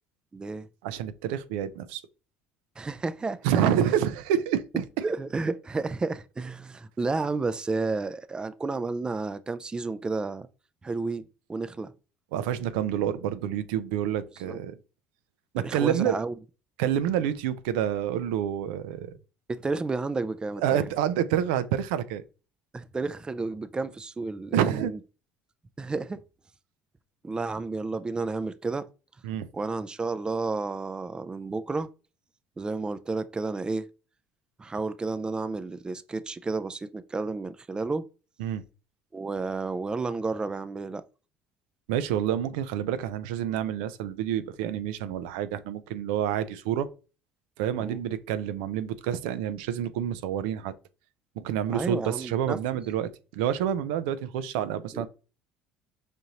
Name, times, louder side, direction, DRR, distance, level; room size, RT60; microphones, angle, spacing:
voice 1, 0.3-0.7 2.8-3.7 5.0-10.5 10.8-11.2 11.5-11.9 14.4-14.6 15.6-16.3 19.5-20.9 22.7-25.0 25.8-26.2 27.2-28.9 29.5-31.9 32.6-33.9 34.6-38.1 39.1-41.0 47.8-48.0 51.7-52.6 54.9-55.1, right 3 dB, 20° right, 0.4 m, -31 dB
voice 2, 0.8-2.0 3.4-5.0 12.3-14.8 15.5-16.2 16.8-19.2 20.6-22.2 24.5-24.9 29.2-29.5 38.4-38.6 41.9-46.9 47.6-50.7 51.4-55.1, right 10 dB, 85° right, 0.4 m, -28 dB
4.9 x 2.6 x 2.8 m
supercardioid pair, 85°, 5 cm